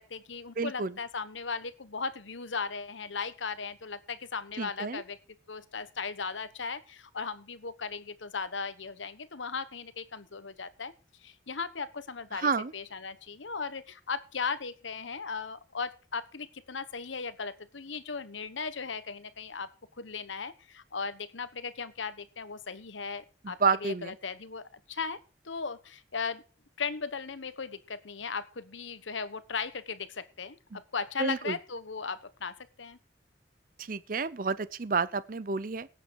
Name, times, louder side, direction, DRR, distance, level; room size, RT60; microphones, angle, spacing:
voice 1, 0.0-5.2 5.5-10.9 11.2-19.7 20.0-25.2 25.4-26.4 26.8-33.0, left 5 dB, 85° left, 1.1 m, -37 dB
voice 2, 0.6-0.9 4.6-5.0 12.3-12.7 23.4-24.1 31.2-31.6 33.8-35.9, right 4 dB, 45° right, 0.6 m, -30 dB
17.5 x 8.3 x 4.7 m
head